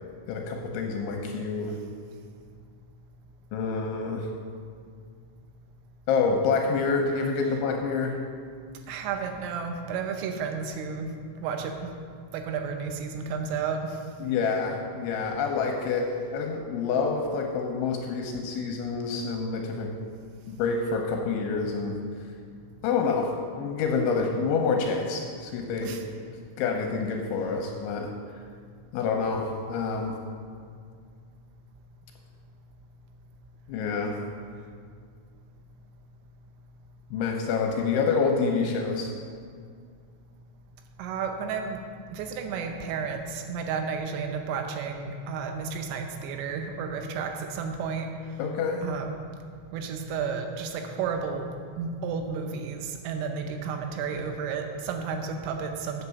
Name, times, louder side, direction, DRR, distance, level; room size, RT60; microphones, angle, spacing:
voice 1, 0.3-1.8 3.5-4.3 6.1-8.2 14.2-19.9 20.5-22.0 22.8-26.0 26.6-28.1 28.9-30.2 33.7-34.2 37.1-39.1 48.4-48.9, left 4 dB, 80° left, 2 dB, 2.9 m, -27 dB
voice 2, 8.9-11.1 11.4-11.9 12.3-14.0 25.8-26.0 41.0-41.8 42.1-48.1 48.8-49.2 49.7-51.5 51.8-56.1, right 5 dB, 80° right, 5 dB, 3.3 m, -32 dB
8.2 x 7.3 x 6.9 m, 2.2 s
omnidirectional pair, 5.9 m